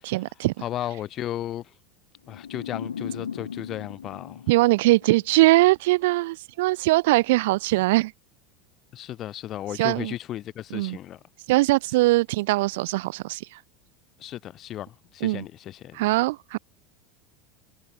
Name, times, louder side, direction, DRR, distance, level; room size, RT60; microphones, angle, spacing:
voice 1, 0.0-0.5 4.5-8.1 9.8-10.1 10.7-11.0 11.5-13.6 15.2-15.4 15.9-16.6, right 20 dB, 70° right, 0.5 m, -21 dB
voice 2, 0.6-1.7 2.3-4.4 8.9-11.2 14.2-16.1, left 12 dB, 45° left, 4.0 m, -35 dB
sound 1, 2.3-5.4, left 7 dB, 90° left, 5.1 m, -37 dB
hypercardioid pair, 85°, 0 cm